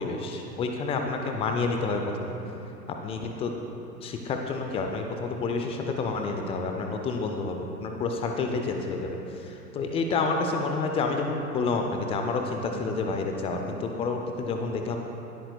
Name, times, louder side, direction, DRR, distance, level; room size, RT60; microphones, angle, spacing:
voice 1, 0.0-2.3 2.9-3.5 4.0-15.0, left 3 dB, 10° left, 3 dB, 0.5 m, -29 dB
19.5 x 13.0 x 2.3 m, 2.9 s
figure-of-eight pair, 100°, 49 cm